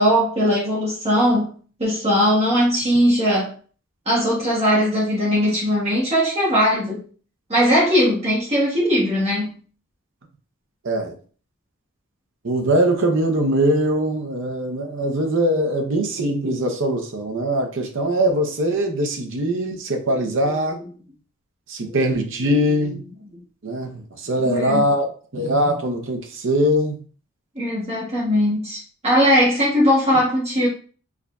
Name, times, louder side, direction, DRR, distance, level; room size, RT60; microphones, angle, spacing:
voice 1, 0.0-1.5 1.8-3.5 4.1-7.0 7.5-9.5 21.8-22.0 24.4-24.9 27.6-30.7, equal, 30° right, 1.1 m, -19 dB
voice 2, 10.8-11.2 12.4-20.8 21.7-23.0 23.6-27.0, right 1 dB, 60° right, 0.7 m, -22 dB
4.8 x 2.6 x 2.3 m
head